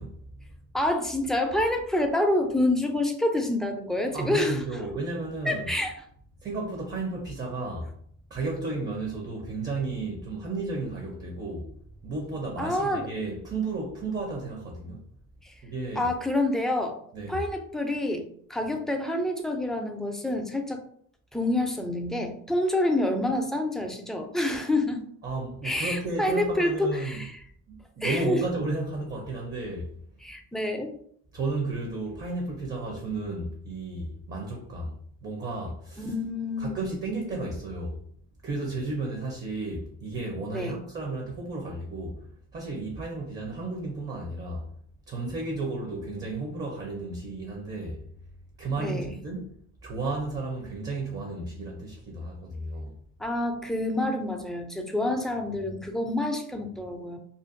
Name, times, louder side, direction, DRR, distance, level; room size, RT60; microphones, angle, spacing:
voice 1, 0.0-0.6 4.1-5.7 6.4-7.9 8.3-11.7 12.0-15.0 15.6-16.1 17.1-17.4 25.2-27.3 27.7-29.9 31.3-36.1 36.6-38.0 38.4-44.7 45.1-48.0 48.6-49.5 49.8-53.0, right 2 dB, 35° right, 0.7 m, -33 dB
voice 2, 0.7-4.6 5.5-5.9 12.6-13.1 15.4-15.5 16.0-17.0 17.3-20.8 21.3-25.0 25.6-27.3 28.0-28.4 30.2-30.9 36.0-36.7 40.5-40.8 48.8-49.1 53.2-57.2, left 1 dB, ahead, 0.4 m, -27 dB
2.5 x 2.2 x 2.5 m
cardioid pair, 90°, 30 cm